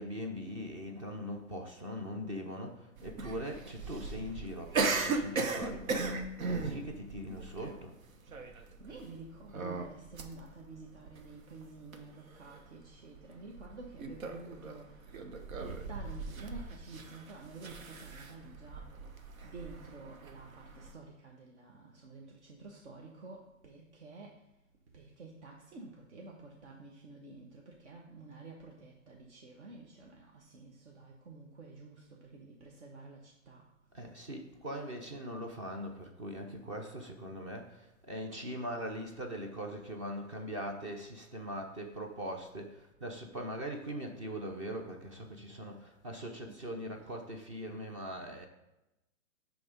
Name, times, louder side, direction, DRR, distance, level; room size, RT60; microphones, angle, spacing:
voice 1, 0.0-6.1 6.5-7.9 33.9-48.5, equal, 25° right, 2 dB, 0.6 m, -41 dB
sound 1, 3.0-20.9, right 4 dB, 90° right, 1.3 m, -38 dB
voice 2, 8.8-15.2 15.6-18.9 19.4-24.5 24.9-33.6 46.4-46.6, right 3 dB, 60° right, 0 dB, 1.3 m, -50 dB
9.5 x 3.5 x 5.3 m, 0.94 s
hypercardioid pair, 165°, 40 cm